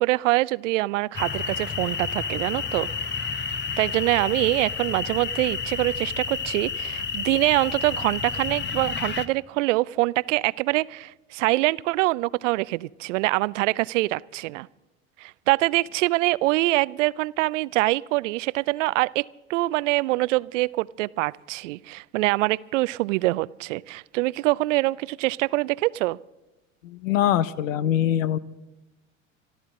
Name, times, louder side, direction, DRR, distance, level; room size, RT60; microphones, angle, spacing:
voice 1, 0.0-2.9 3.2-3.3 3.8-14.7 15.2-26.2, right 20 dB, 70° right, 22 dB, 0.5 m, -24 dB
sound 1, 1.1-9.3, left 5 dB, 25° left, 1.1 m, -30 dB
voice 2, 26.8-28.4, left 11 dB, 75° left, 18 dB, 0.7 m, -23 dB
25.0 x 13.5 x 3.7 m, 1.0 s
hypercardioid pair, 75°, 40 cm